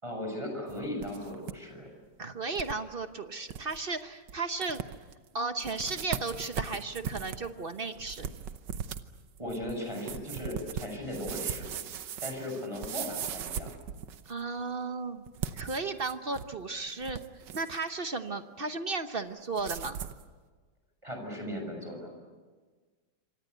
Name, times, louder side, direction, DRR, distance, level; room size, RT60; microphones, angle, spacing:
voice 1, 0.0-1.9 9.4-11.7 12.2-13.7 21.0-22.1, left 1 dB, 15° right, 3 dB, 6.7 m, -37 dB
sound 1, 0.7-1.6 1.9-2.0 2.6-2.8 3.2-3.3 3.5-3.8 4.3-4.4 4.6-5.1 5.6-14.4 15.3-16.6 16.9-17.8 19.6-20.2, right 8 dB, 75° right, 1.6 m, -38 dB
voice 2, 2.2-4.8 5.3-8.3 14.3-15.2 15.5-17.2 17.5-20.0, right 3 dB, 40° right, 8 dB, 0.9 m, -34 dB
27.5 x 25.0 x 8.1 m, 1.4 s
omnidirectional pair, 2.0 m